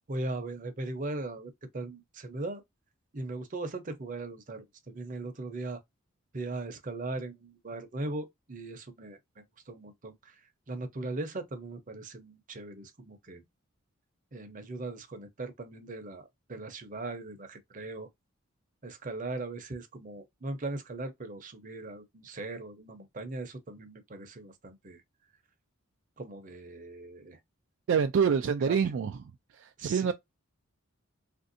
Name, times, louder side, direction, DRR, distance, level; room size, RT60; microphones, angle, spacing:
voice 1, 0.1-2.6 3.1-5.8 6.3-10.3 10.7-13.4 14.3-18.1 18.8-25.0 26.2-27.4 28.7-28.8 29.8-30.1, right 2 dB, 40° right, 0.7 m, -39 dB
voice 2, 27.9-29.2 29.5-30.1, right 6 dB, 65° right, 0.3 m, -26 dB
3.3 x 2.6 x 2.6 m
head